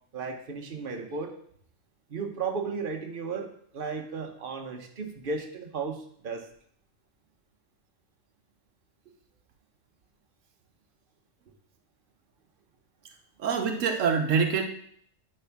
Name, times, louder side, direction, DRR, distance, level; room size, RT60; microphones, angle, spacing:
voice 1, 0.1-1.3 2.1-6.5, right 4 dB, 45° right, 3 dB, 1.2 m, -34 dB
voice 2, 13.4-14.6, right 6 dB, 80° right, 5 dB, 1.2 m, -25 dB
10.0 x 3.6 x 5.9 m, 0.64 s
omnidirectional pair, 1.3 m